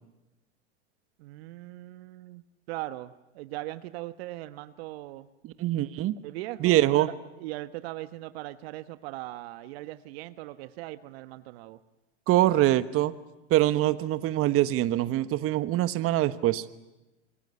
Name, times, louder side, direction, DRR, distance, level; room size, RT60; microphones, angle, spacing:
voice 1, 1.2-5.3 6.2-11.8, right 17 dB, 60° right, 13 dB, 1.2 m, -40 dB
voice 2, 5.4-6.2 6.6-7.1 12.3-13.1 13.5-16.6, right 15 dB, 40° right, 14 dB, 1.4 m, -24 dB
26.5 x 23.0 x 9.6 m, 1.0 s
hypercardioid pair, 100°, 35 cm